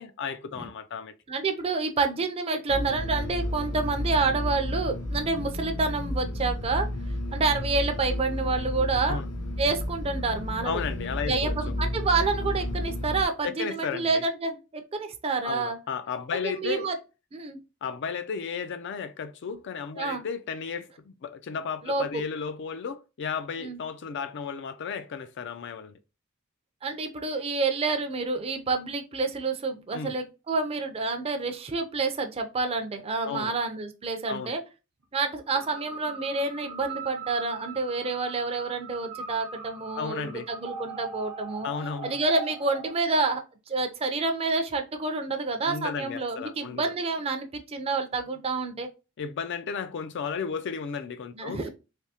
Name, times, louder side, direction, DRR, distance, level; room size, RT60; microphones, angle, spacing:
voice 1, 0.0-1.1 9.0-9.3 10.6-11.7 13.4-14.2 15.4-16.9 17.8-26.0 29.9-30.2 33.2-33.5 34.3-34.6 39.9-40.5 41.6-42.1 45.6-46.9 49.2-51.6, left 6 dB, 55° left, 0.4 m, -34 dB
voice 2, 1.3-6.9 7.3-9.2 9.6-10.8 11.3-14.6 14.9-15.8 16.4-16.9 17.3-17.6 20.0-20.2 21.8-22.2 23.6-23.8 26.8-34.6 35.1-41.7 42.0-48.9 51.3-51.7, right 3 dB, 30° right, 0.5 m, -28 dB
sound 1, 2.7-13.2, left 1 dB, 80° left, 0.8 m, -32 dB
sound 2, 35.5-43.0, right 5 dB, 65° right, 0.7 m, -41 dB
3.4 x 2.7 x 2.7 m
head